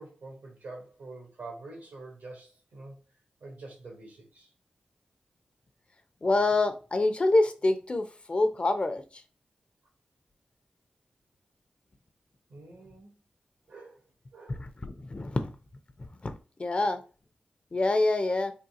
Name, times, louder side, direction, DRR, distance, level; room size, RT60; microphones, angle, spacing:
voice 1, 0.0-3.0 3.4-4.5 12.5-13.1 13.7-14.0 14.3-14.6, right 3 dB, 90° right, 1.2 m, -46 dB
voice 2, 6.2-9.0 14.6-15.5 16.2-16.3 16.6-17.0 17.7-18.5, left 2 dB, 40° left, 0.6 m, -26 dB
3.7 x 2.4 x 2.8 m
cardioid pair, 45°, 3 cm